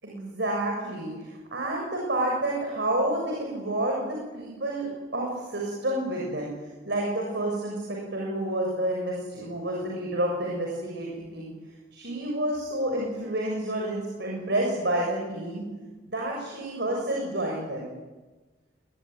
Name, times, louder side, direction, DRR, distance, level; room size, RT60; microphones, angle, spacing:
voice 1, 0.0-6.5 6.9-11.5 11.9-15.6 16.1-17.9, right 1 dB, 65° right, -1 dB, 7.1 m, -29 dB
24.5 x 20.5 x 9.6 m, 1.2 s
head